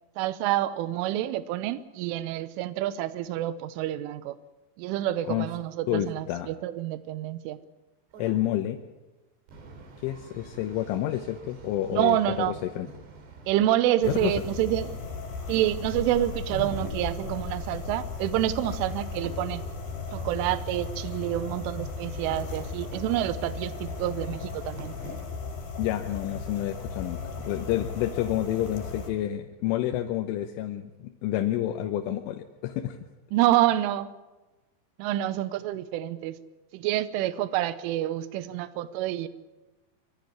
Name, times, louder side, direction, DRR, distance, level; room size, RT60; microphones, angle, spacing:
voice 1, 0.2-4.4 4.8-7.6 11.9-12.5 13.5-14.9 15.5-19.6 20.1-25.0 33.3-34.1 35.0-36.4 36.7-39.3, right 13 dB, 85° right, 14 dB, 3.3 m, -28 dB
voice 2, 5.9-6.5 8.2-8.8 10.0-12.9 14.1-14.3 25.8-33.0, left 12 dB, 85° left, 5 dB, 3.5 m, -29 dB
sound 1, 8.1-8.5 9.5-25.2, right 2 dB, 65° right, 4.8 m, -47 dB
sound 2, 14.0-29.1, left 4 dB, 50° left, 6.4 m, -36 dB
23.5 x 14.5 x 9.6 m, 1.1 s
omnidirectional pair, 5.5 m